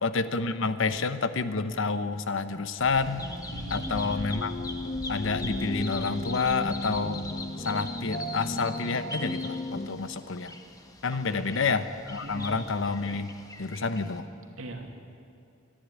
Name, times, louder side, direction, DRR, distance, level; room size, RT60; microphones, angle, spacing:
voice 1, 0.0-3.2 3.7-4.5 5.1-7.3 7.6-10.5 11.0-13.3 13.6-14.3, left 4 dB, 70° left, 11 dB, 1.0 m, -29 dB
Bird vocalization bird call bird song, 2.8-14.2, left 1 dB, 20° left, 1.6 m, -42 dB
sound 1, 3.0-9.9, left 1 dB, 35° left, 1.4 m, -35 dB
voice 2, 3.5-4.9 11.1-11.6 12.2-12.5 14.6-15.0, right 1 dB, 90° right, 2 dB, 2.6 m, -42 dB
25.5 x 10.5 x 9.9 m, 2.6 s
head